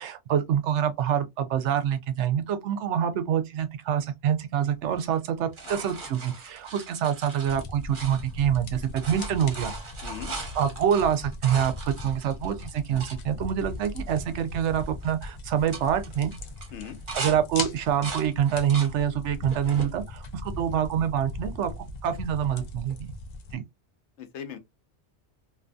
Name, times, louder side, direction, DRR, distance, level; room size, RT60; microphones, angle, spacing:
voice 1, 0.0-9.7 10.5-16.3 17.1-23.1 23.5-23.6, right 9 dB, 85° right, 0.9 m, -26 dB
sound 1, 4.9-8.6 8.8-13.2 13.8-13.9 14.1-14.5 14.8-15.1 15.5-17.4 17.7-18.9 19.4-19.9 20.6-21.3 22.9-23.0, right 3 dB, 50° right, 1.0 m, -39 dB
sound 2, 7.4-23.6, left 2 dB, 55° left, 0.5 m, -39 dB
voice 2, 10.0-10.3 16.7-17.0 24.2-24.6, left 8 dB, 80° left, 1.0 m, -39 dB
2.6 x 2.5 x 2.2 m
omnidirectional pair, 1.2 m